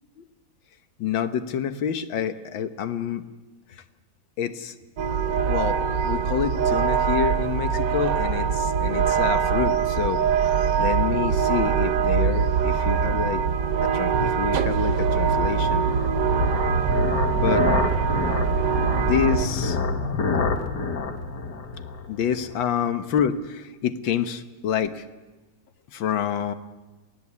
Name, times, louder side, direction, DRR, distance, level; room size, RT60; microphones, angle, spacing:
voice 1, 1.0-3.2 3.7-3.8 4.4-4.8 5.5-10.2 10.8-13.4 13.8-15.9 17.3-17.7 18.9-19.8 22.1-25.1 25.9-26.5, left 8 dB, 80° left, 10 dB, 1.9 m, -27 dB
sound 1, 5.0-19.5, right 6 dB, 70° right, 1.6 m, -23 dB
sound 2, 13.3-22.6, left 4 dB, 60° left, 2.3 m, -28 dB
28.0 x 18.0 x 8.5 m, 1.2 s
omnidirectional pair, 2.1 m